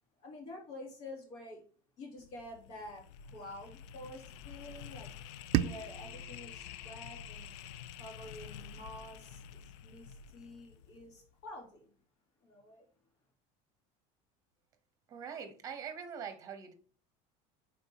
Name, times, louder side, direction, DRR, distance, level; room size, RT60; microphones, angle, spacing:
voice 1, 0.2-1.6 2.0-5.1 5.4-7.5 8.0-11.9 12.4-12.9, left 1 dB, 65° left, 3.1 m, -49 dB
sound 1, 2.2-11.3, left 8 dB, 80° left, 0.5 m, -49 dB
sound 2, 5.5-8.4, right 13 dB, 45° right, 0.4 m, -37 dB
voice 2, 15.1-16.7, right 7 dB, 25° right, 1.0 m, -43 dB
10.5 x 4.3 x 3.0 m
cardioid pair, 170°, 15 cm